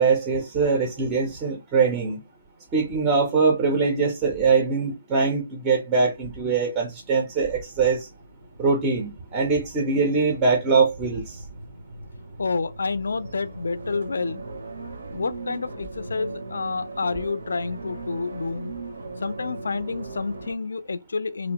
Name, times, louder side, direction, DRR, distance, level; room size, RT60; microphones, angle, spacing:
voice 1, 0.0-2.2 2.7-8.1 8.6-11.4, right 4 dB, 10° right, 0.4 m, -22 dB
sound 1, 6.4-20.5, right 3 dB, 90° right, 0.7 m, -39 dB
voice 2, 12.4-14.5 15.1-18.7 19.2-21.5, left 4 dB, 80° left, 0.3 m, -29 dB
2.8 x 2.0 x 2.8 m
hypercardioid pair, 175°, 0 cm